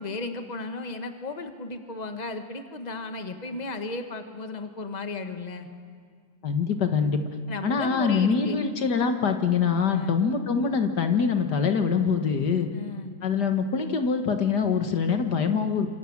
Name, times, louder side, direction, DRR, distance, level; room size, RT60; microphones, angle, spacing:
voice 1, 0.0-5.7 7.5-8.6 9.9-10.2 12.7-13.2, left 3 dB, 25° left, 7 dB, 1.7 m, -35 dB
voice 2, 6.4-7.2 7.6-12.7 13.2-15.9, left 6 dB, 75° left, 6 dB, 2.1 m, -24 dB
27.5 x 27.0 x 7.4 m, 2.1 s
omnidirectional pair, 1.8 m